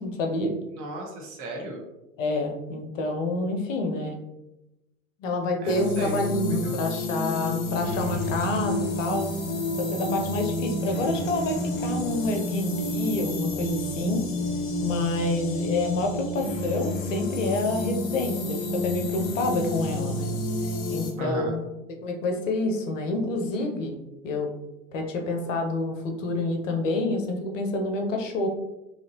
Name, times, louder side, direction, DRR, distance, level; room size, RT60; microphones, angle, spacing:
voice 1, 0.0-0.5 2.2-4.2 5.2-9.3 9.8-14.3 14.8-20.3 20.9-21.6 22.0-24.0 24.2-24.5 24.9-28.5, left 2 dB, 70° left, 3 dB, 0.6 m, -28 dB
voice 2, 0.7-1.8 5.6-6.3 6.6-6.8 21.2-21.6, right 1 dB, 45° right, 0 dB, 0.8 m, -35 dB
sound 1, 5.7-21.1, left 1 dB, 25° left, 0.4 m, -29 dB
2.9 x 2.4 x 2.8 m, 0.95 s
figure-of-eight pair, 80°, 40 cm